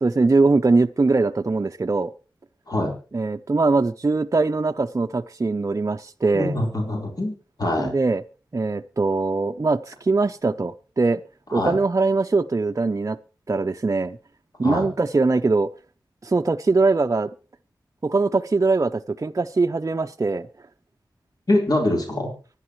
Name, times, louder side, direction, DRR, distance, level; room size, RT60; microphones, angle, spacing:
voice 1, 0.0-2.1 3.1-6.6 7.8-8.2 8.5-11.2 11.5-13.2 13.5-14.2 14.6-15.7 16.2-17.3 18.0-20.5, right 3 dB, 40° right, 0.6 m, -21 dB
voice 2, 6.3-7.3 7.6-7.9 11.5-11.7 14.6-14.9 21.5-22.3, left 1 dB, 55° left, 4.1 m, -23 dB
24.5 x 9.8 x 3.1 m
cardioid pair, 45°, 8 cm